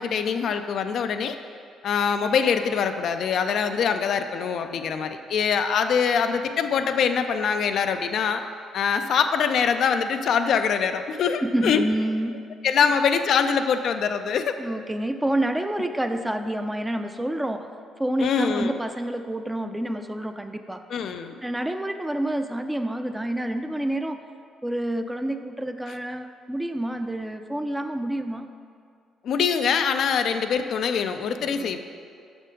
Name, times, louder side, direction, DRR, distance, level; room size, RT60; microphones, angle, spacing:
voice 1, 0.0-1.4 1.8-8.4 8.7-11.8 12.6-14.5 18.2-18.7 20.9-21.3 29.2-31.8, left 6 dB, 65° left, 7 dB, 0.3 m, -23 dB
voice 2, 11.4-12.4 14.6-17.7 18.0-20.8 21.4-24.2 24.6-28.5 31.4-31.8, right 1 dB, 10° right, 7 dB, 0.4 m, -28 dB
6.1 x 4.4 x 5.1 m, 2.3 s
supercardioid pair, 60°, 0 cm